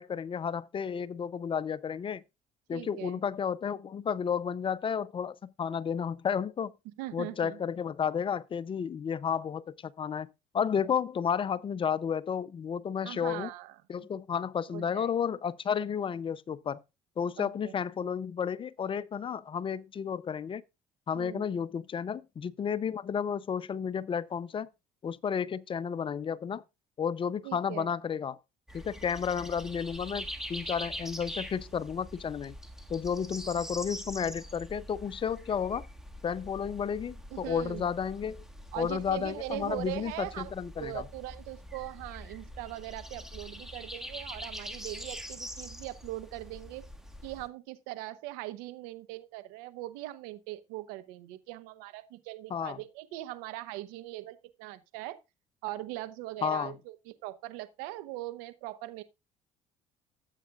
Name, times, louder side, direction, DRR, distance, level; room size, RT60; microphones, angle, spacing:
voice 1, 0.0-2.2 2.7-6.7 7.1-10.3 10.5-13.5 13.9-16.8 17.2-20.6 21.1-24.7 25.0-26.6 27.0-28.4 28.7-32.5 32.9-35.9 36.2-38.4 38.8-41.0 52.5-52.8 56.4-56.7, left 7 dB, 40° left, 0.6 m, -32 dB
voice 2, 2.7-3.2 7.0-7.6 13.0-14.1 14.7-15.1 17.4-17.7 21.1-21.4 27.4-27.9 37.3-37.9 38.7-40.5 40.8-46.8 47.2-55.2 55.6-59.0, right 17 dB, 80° right, 0.9 m, -40 dB
sound 1, 28.7-47.5, equal, 5° right, 1.8 m, -44 dB
13.5 x 8.3 x 2.4 m
hypercardioid pair, 70°, 14 cm